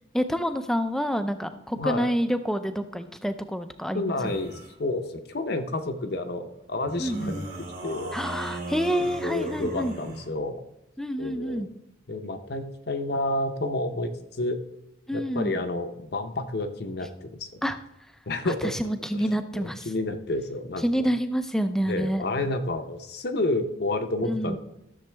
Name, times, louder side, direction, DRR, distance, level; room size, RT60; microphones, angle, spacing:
voice 1, 0.1-4.1 7.0-7.4 8.1-9.9 11.0-11.7 15.1-15.5 17.6-17.8 18.6-19.9 20.8-22.2 24.3-24.6, equal, ahead, 9 dB, 0.4 m, -28 dB
voice 2, 1.8-2.1 3.9-7.5 7.8-8.1 9.2-10.6 11.2-11.6 12.1-14.6 15.1-17.6 18.3-18.7 19.1-21.1 21.9-24.6, left 2 dB, 55° left, 7 dB, 0.7 m, -30 dB
sound 1, 4.2-4.7 6.9-10.3, right 1 dB, 45° right, 2.4 m, -37 dB
13.5 x 7.1 x 3.4 m, 0.88 s
head